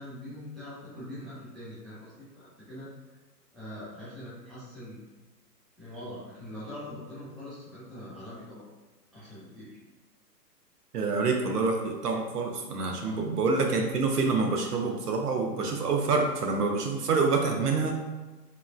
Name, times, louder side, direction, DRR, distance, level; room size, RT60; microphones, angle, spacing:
voice 1, 0.0-2.9 3.5-5.0 5.8-8.7 9.1-9.8 13.0-13.2, left 1 dB, ahead, -11 dB, 0.4 m, -43 dB
voice 2, 10.9-17.9, right 4 dB, 70° right, 2 dB, 0.6 m, -27 dB
3.0 x 2.9 x 2.3 m, 1.2 s
hypercardioid pair, 175°, 49 cm